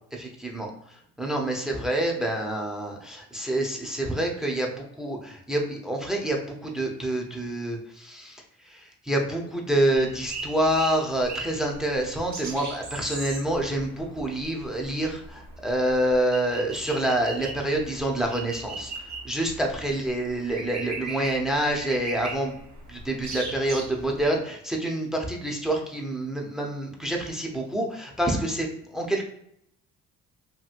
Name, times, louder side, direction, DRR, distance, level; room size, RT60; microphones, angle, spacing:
voice 1, 0.1-0.7 1.2-8.4 8.7-18.9 19.2-22.5 22.9-29.2, right 1 dB, ahead, 1 dB, 0.7 m, -27 dB
sound 1, 9.9-24.4, right 3 dB, 50° right, 1.1 m, -39 dB
2.9 x 2.7 x 2.5 m, 0.72 s
cardioid pair, 75°, 36 cm